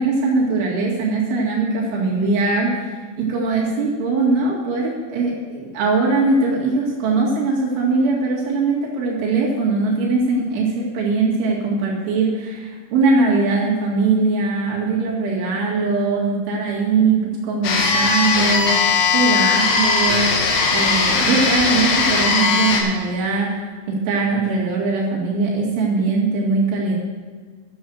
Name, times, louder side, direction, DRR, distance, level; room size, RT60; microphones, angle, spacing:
voice 1, 0.0-2.7 3.2-20.3 20.7-23.6 23.9-27.0, right 3 dB, 75° right, -5 dB, 4.5 m, -21 dB
sound 1, 17.6-22.8, left 4 dB, 80° left, 4.1 m, -18 dB
12.0 x 7.5 x 7.8 m, 1.5 s
omnidirectional pair, 5.5 m